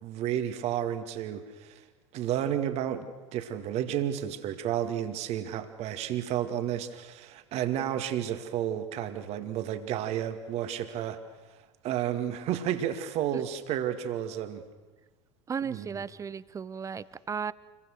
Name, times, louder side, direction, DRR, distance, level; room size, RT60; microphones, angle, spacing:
voice 1, 0.0-1.8 2.1-11.2 11.8-14.6 15.7-16.0, right 10 dB, 45° right, 8 dB, 2.3 m, -31 dB
voice 2, 15.5-17.5, right 6 dB, 20° right, 18 dB, 0.8 m, -35 dB
29.0 x 23.0 x 6.5 m, 1.3 s
figure-of-eight pair, 75°, 15 cm